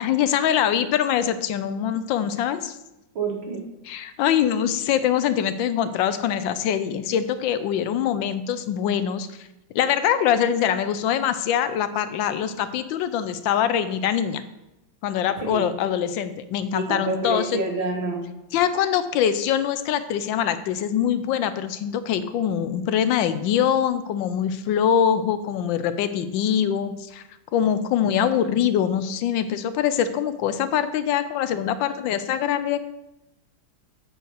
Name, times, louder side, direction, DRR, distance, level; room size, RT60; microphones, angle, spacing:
voice 1, 0.0-2.8 3.9-9.5 9.7-14.4 15.0-17.6 18.5-27.2 27.5-32.8, left 9 dB, 75° left, 12 dB, 1.3 m, -23 dB
voice 2, 3.2-3.7 15.4-15.7 16.7-18.2, right 3 dB, 85° right, 1 dB, 2.4 m, -28 dB
7.9 x 4.5 x 6.4 m, 0.93 s
omnidirectional pair, 2.1 m